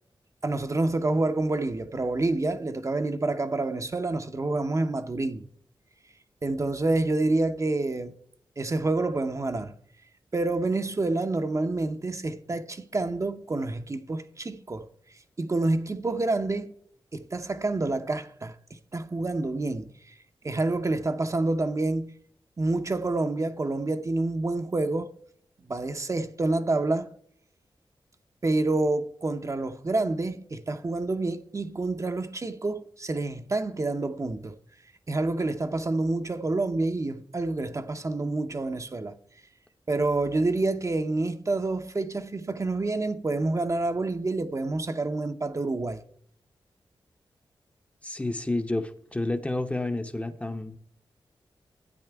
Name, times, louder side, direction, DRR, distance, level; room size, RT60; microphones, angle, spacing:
voice 1, 0.4-5.4 6.4-8.1 8.6-9.7 10.3-14.9 15.4-16.7 17.1-19.9 20.4-22.1 22.6-25.1 25.7-27.1 28.4-34.6 35.1-39.1 39.9-46.0, right 2 dB, 35° right, 0.6 m, -28 dB
voice 2, 48.0-50.8, left 2 dB, 15° left, 0.7 m, -30 dB
12.0 x 8.9 x 3.4 m
wide cardioid pair, 90°, 9 cm